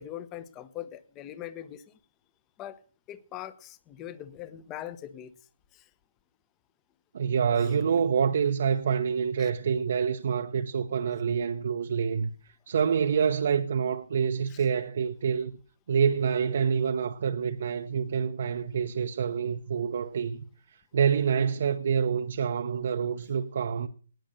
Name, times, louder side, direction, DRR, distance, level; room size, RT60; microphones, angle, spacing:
voice 1, 0.0-1.8 2.6-2.8 3.1-5.4 5.7-5.9 9.4-9.5 14.5-14.6, left 11 dB, 20° left, 0.9 m, -41 dB
voice 2, 7.1-15.5 15.9-23.9, right 7 dB, 55° right, 0.8 m, -27 dB
18.0 x 6.5 x 6.5 m
figure-of-eight pair, 145°, 0 cm